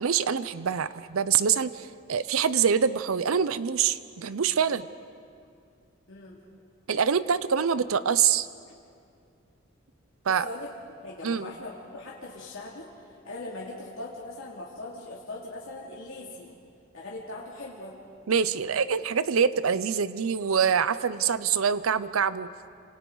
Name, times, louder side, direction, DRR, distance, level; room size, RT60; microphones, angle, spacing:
voice 1, 0.0-4.9 6.9-8.5 10.3-10.5 11.2-11.5 18.3-22.5, right 7 dB, 90° right, 15 dB, 0.6 m, -25 dB
voice 2, 6.1-6.4 10.4-12.9 13.2-16.5 16.9-18.0, left 2 dB, 75° left, -5 dB, 2.5 m, -40 dB
29.0 x 27.0 x 3.9 m, 2.4 s
head